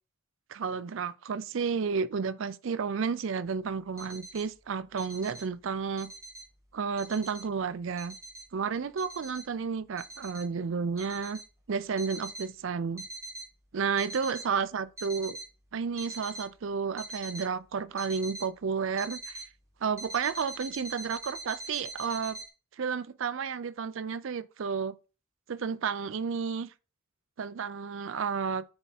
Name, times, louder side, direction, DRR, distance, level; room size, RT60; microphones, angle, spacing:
voice 1, 0.5-6.1 6.7-8.2 8.5-11.4 11.7-13.1 13.7-15.4 15.7-19.4 19.8-22.4 22.8-24.9 25.5-26.7 27.4-28.6, right 5 dB, 60° right, 0.4 m, -32 dB
sound 1, 3.8-4.5 4.9-5.4 5.8-6.5 7.0-7.5 8.0-8.5 9.0-9.4 10.0-10.4 11.0-11.4 12.0-12.5 13.0-13.5 13.8-14.5 15.0-15.5 16.0-16.5 17.0-17.5 18.0-18.5 19.0-19.5 20.0-22.5, right 2 dB, 15° right, 1.6 m, -42 dB
7.8 x 3.5 x 4.2 m
head